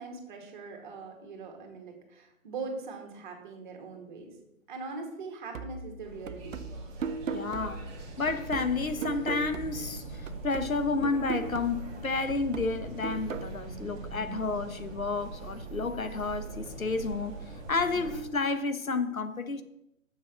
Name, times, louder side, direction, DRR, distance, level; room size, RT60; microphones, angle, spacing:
voice 1, 0.0-4.3 4.7-6.7, right 4 dB, 35° right, 1.9 m, -41 dB
sound 1, 5.5-10.0 10.3-13.5, right 5 dB, 70° right, 0.7 m, -39 dB
sound 2, 6.0-18.2, right 3 dB, 20° right, 1.5 m, -42 dB
voice 2, 7.3-7.8 8.2-17.4 17.7-19.6, left 4 dB, 85° left, 1.0 m, -31 dB
6.8 x 6.2 x 5.9 m
figure-of-eight pair, 135°, 40 cm